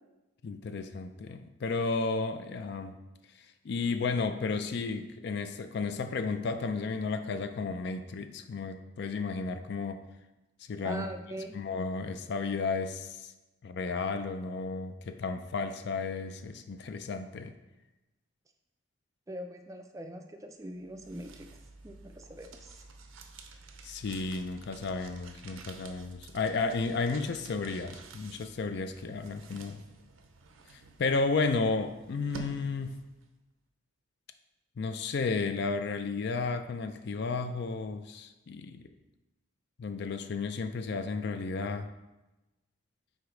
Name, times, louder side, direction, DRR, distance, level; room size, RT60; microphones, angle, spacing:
voice 1, 0.4-2.9 3.4-10.0 10.7-11.0 11.5-13.3 13.6-17.5 23.8-29.8 30.7-33.0 34.8-38.9 39.8-41.9, left 4 dB, 55° left, 9 dB, 0.4 m, -33 dB
voice 2, 10.8-11.6 19.3-21.5 21.8-22.8, right 1 dB, 15° right, 5 dB, 0.3 m, -42 dB
sound 1, 20.7-33.3, right 3 dB, 85° right, 0.6 m, -50 dB
4.9 x 4.0 x 4.9 m, 1.0 s
head